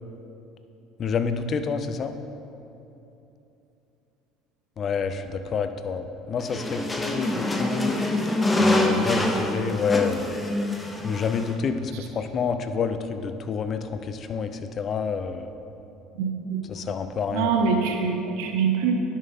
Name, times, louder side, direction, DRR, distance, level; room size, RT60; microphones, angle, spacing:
voice 1, 1.0-2.1 4.8-6.8 7.1-8.0 8.6-10.3 11.0-14.5 14.8-15.5 16.7-17.7, left 6 dB, 45° left, 9 dB, 0.6 m, -28 dB
sound 1, 6.4-11.5, left 1 dB, 15° left, 1.2 m, -25 dB
voice 2, 16.2-16.9 17.3-19.0, right 5 dB, 75° right, 3 dB, 0.7 m, -25 dB
10.5 x 7.2 x 3.7 m, 2.9 s
hypercardioid pair, 70°, 0 cm